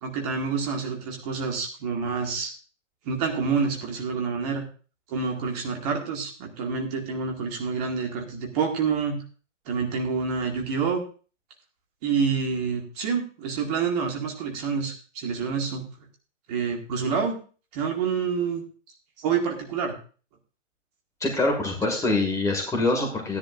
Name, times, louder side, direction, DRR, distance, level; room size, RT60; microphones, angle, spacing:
voice 1, 0.0-2.5 3.1-4.6 5.1-9.2 9.7-11.0 12.0-15.9 16.5-17.4 17.7-18.6 19.2-20.0, right 5 dB, 30° right, 1 dB, 2.1 m, -27 dB
voice 2, 21.2-23.4, left 2 dB, 10° left, 1 dB, 2.0 m, -24 dB
15.0 x 10.5 x 2.6 m, 0.37 s
figure-of-eight pair, 120°, 38 cm